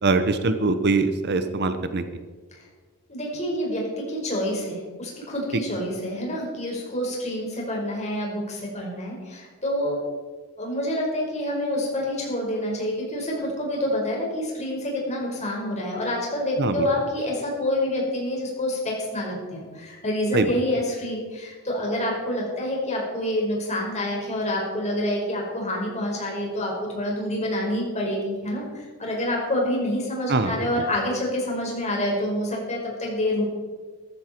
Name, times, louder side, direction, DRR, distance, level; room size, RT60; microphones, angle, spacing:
voice 1, 0.0-2.0 16.6-16.9 20.3-20.5 30.3-30.7, right 3 dB, 50° right, 10 dB, 0.9 m, -22 dB
voice 2, 3.1-10.0 10.6-33.4, left 1 dB, 30° left, -2 dB, 5.1 m, -27 dB
14.5 x 14.0 x 4.5 m, 1.5 s
head